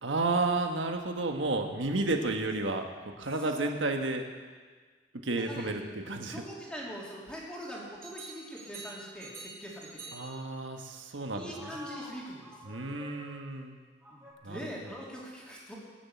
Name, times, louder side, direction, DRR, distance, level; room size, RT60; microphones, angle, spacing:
voice 1, 0.0-2.9 3.2-4.3 5.2-6.4 10.1-11.8 12.7-13.8 14.4-14.9, right 2 dB, 85° right, 4 dB, 1.4 m, -32 dB
voice 2, 5.3-5.8 6.3-10.2 11.3-12.5 14.1-15.7, equal, 5° left, -5 dB, 3.2 m, -42 dB
sound 1, 8.0-10.4 11.5-13.6 14.0-14.3, right 2 dB, 15° right, 3.4 m, -47 dB
19.0 x 7.4 x 8.4 m, 1.5 s
head